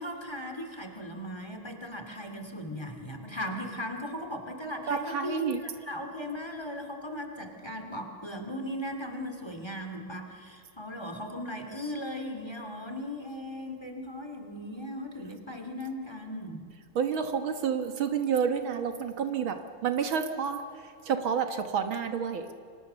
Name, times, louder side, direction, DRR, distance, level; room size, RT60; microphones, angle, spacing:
voice 1, 0.0-16.7, left 1 dB, 10° left, 5 dB, 2.4 m, -38 dB
voice 2, 4.9-5.6 17.0-19.6 19.8-20.6 21.1-22.5, right 7 dB, 70° right, 7 dB, 2.1 m, -29 dB
30.0 x 24.5 x 6.9 m, 2.3 s
omnidirectional pair, 2.3 m